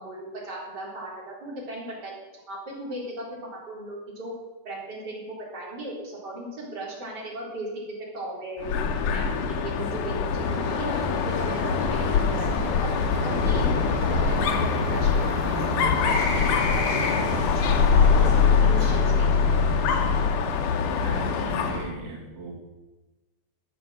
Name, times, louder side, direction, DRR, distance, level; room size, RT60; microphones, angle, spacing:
voice 1, 0.0-2.1 2.5-4.3 4.6-7.8 8.1-8.7 9.1-10.9 11.2-13.9 14.1-15.9 16.3-17.3 17.8-18.3 18.6-19.5, right 1 dB, 30° right, -5 dB, 4.5 m, -37 dB
Dog, 8.6-21.9, left 6 dB, 85° left, 2.6 m, -23 dB
sound 1, 10.4-20.2, left 1 dB, 65° left, 5.6 m, -31 dB
voice 2, 21.0-22.5, right 3 dB, 80° right, -3 dB, 3.7 m, -37 dB
12.0 x 7.2 x 7.7 m, 1.2 s
omnidirectional pair, 3.5 m